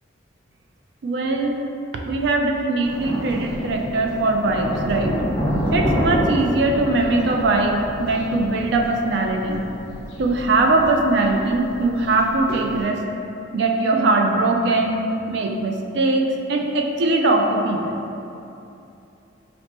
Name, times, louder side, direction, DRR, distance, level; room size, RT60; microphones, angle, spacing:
voice 1, 1.0-1.6 2.1-5.2 5.7-9.6 10.2-13.0 13.5-15.0 15.3-18.0, right 2 dB, 60° right, 2 dB, 0.3 m, -21 dB
Thunder, 2.8-12.8, equal, 10° left, 0.8 m, -28 dB
4.3 x 2.0 x 2.9 m, 2.8 s
head